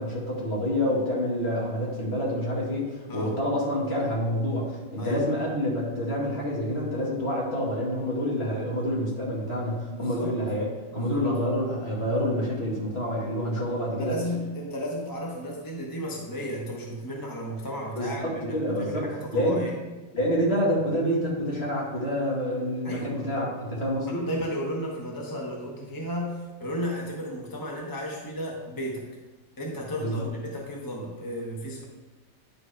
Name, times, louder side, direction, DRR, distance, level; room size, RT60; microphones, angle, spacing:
voice 1, 0.0-10.7 10.9-14.1 18.0-19.7 20.1-24.3 30.0-30.2, equal, 45° left, -4 dB, 2.5 m, -27 dB
voice 2, 9.9-10.4 10.9-11.2 14.0-19.7 22.8-23.3 24.1-29.0 29.6-31.8, equal, 15° left, -2 dB, 1.0 m, -34 dB
10.0 x 4.8 x 5.0 m, 1.2 s
omnidirectional pair, 1.4 m